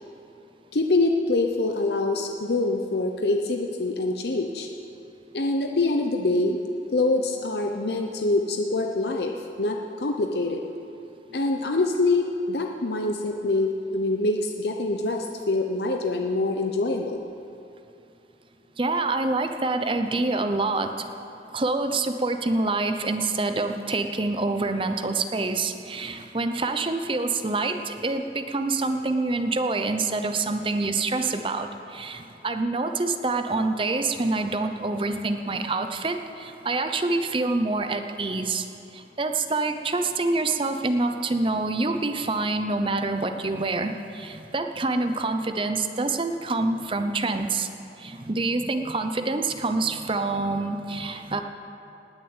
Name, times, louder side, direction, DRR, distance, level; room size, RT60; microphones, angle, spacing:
voice 1, 0.7-4.7 5.3-6.6 6.9-10.6 11.3-17.2, left 2 dB, 70° left, 3 dB, 0.8 m, -25 dB
voice 2, 18.8-21.1 21.5-38.7 38.9-47.7 48.0-51.4, right 3 dB, 30° right, 7 dB, 0.7 m, -26 dB
19.0 x 6.7 x 8.8 m, 2.9 s
head